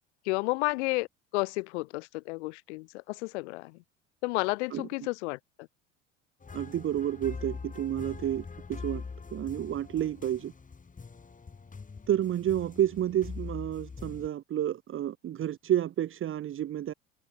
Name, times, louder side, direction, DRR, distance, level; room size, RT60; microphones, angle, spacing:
voice 1, 0.2-1.1 1.3-3.8 4.2-5.4, left 24 dB, 65° left, 1.4 m, -31 dB
sound 1, 6.4-14.3, left 4 dB, 20° left, 5.2 m, -43 dB
voice 2, 6.5-9.0 9.3-10.5 12.1-16.9, right 11 dB, 35° right, 1.0 m, -30 dB
figure-of-eight pair, 70°, 38 cm